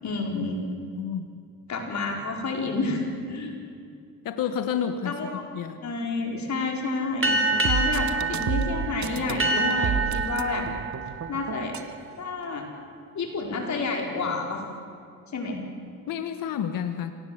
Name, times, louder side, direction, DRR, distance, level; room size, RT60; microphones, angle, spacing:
voice 1, 0.0-0.6 1.7-3.6 5.0-5.4 5.8-10.7 11.3-11.7 12.2-12.7 13.1-14.6 15.3-15.6, left 3 dB, 50° left, 1 dB, 5.0 m, -29 dB
voice 2, 0.9-1.3 4.2-5.1 5.5-5.8 16.1-17.1, left 8 dB, 65° left, 8 dB, 1.4 m, -29 dB
sound 1, 7.2-12.3, right 3 dB, 35° right, 3.5 m, -27 dB
sound 2, 7.5-12.0, right 7 dB, 50° right, 1.5 m, -31 dB
27.5 x 18.5 x 8.0 m, 2.3 s
cardioid pair, 95°, 35 cm